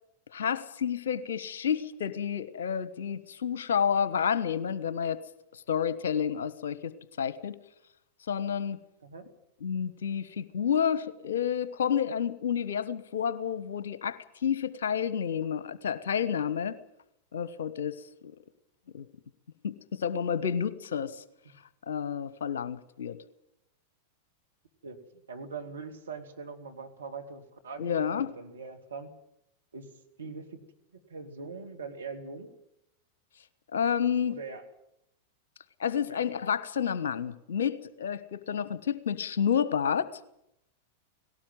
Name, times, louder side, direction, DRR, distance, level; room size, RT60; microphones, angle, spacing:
voice 1, 0.3-5.2 5.7-7.6 8.3-8.8 9.6-16.8 17.3-18.0 18.9-19.1 19.6-21.2 21.9-23.2 27.8-28.3 33.7-34.4 35.8-40.1, left 8 dB, 65° left, 16 dB, 1.1 m, -30 dB
voice 2, 24.8-29.1 29.7-29.9 30.2-30.6 31.1-32.5 34.3-34.6 36.1-36.3, right 4 dB, 70° right, 5 dB, 2.8 m, -42 dB
18.0 x 17.5 x 9.3 m, 0.80 s
figure-of-eight pair, 90°, 0 cm